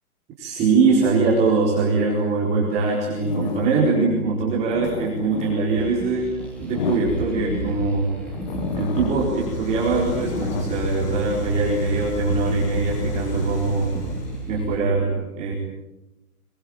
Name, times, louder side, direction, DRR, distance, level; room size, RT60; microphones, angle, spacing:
voice 1, 0.4-8.1 8.8-13.9 14.5-15.5, right 4 dB, 15° right, -5 dB, 4.3 m, -22 dB
sound 1, 3.1-4.0 4.5-7.7 8.2-9.5 9.9-11.8 12.4-14.5, left 5 dB, 30° left, 1.6 m, -33 dB
sound 2, 5.8-14.8, right 3 dB, 5° left, 3.2 m, -34 dB
sound 3, 8.8-14.6, left 5 dB, 80° left, 5.3 m, -32 dB
25.5 x 22.5 x 9.0 m, 0.97 s
hypercardioid pair, 175°, 46 cm